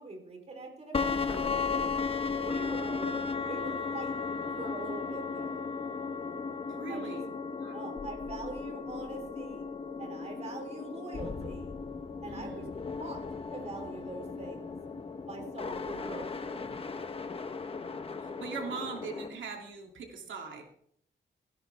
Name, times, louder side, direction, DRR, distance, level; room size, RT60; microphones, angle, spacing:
voice 1, 0.0-1.9 2.3-3.2 3.5-5.7 6.9-7.2 7.7-9.6 10.0-11.8 12.2-12.7 13.0-13.2 13.5-14.8 15.3-16.6, right 3 dB, 35° right, 3 dB, 3.7 m, -43 dB
sound 1, 0.9-19.3, left 5 dB, 30° left, 1.1 m, -36 dB
voice 2, 6.7-7.8 12.3-12.7 17.8-20.6, right 5 dB, 80° right, 1 dB, 2.8 m, -41 dB
19.0 x 15.5 x 3.5 m, 0.66 s
wide cardioid pair, 175°, 19 cm